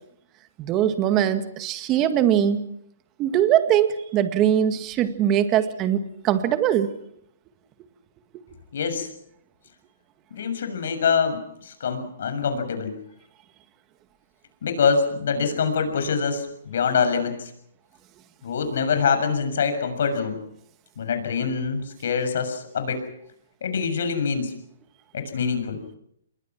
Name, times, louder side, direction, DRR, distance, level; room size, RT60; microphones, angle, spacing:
voice 1, 0.6-2.6 3.2-6.0 6.2-6.9, right 10 dB, 25° right, 9 dB, 1.9 m, -21 dB
voice 2, 8.7-9.1 10.3-13.0 14.6-17.5 18.4-20.4 21.0-23.0 23.6-24.5 25.1-25.8, left 6 dB, 65° left, 8 dB, 6.8 m, -25 dB
28.0 x 22.0 x 6.1 m, 0.72 s
hypercardioid pair, 155°, 0 cm